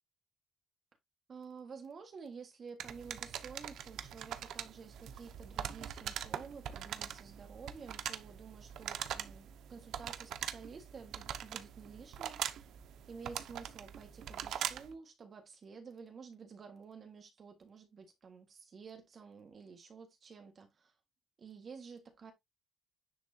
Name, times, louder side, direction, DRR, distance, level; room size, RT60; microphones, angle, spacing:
voice 1, 1.3-12.7 13.1-20.9 21.4-22.3, right 5 dB, 40° right, 1.6 m, -51 dB
sound 1, 2.8-14.9, right 10 dB, 80° right, 0.7 m, -42 dB
10.0 x 3.6 x 2.8 m
cardioid pair, 125°, 0 cm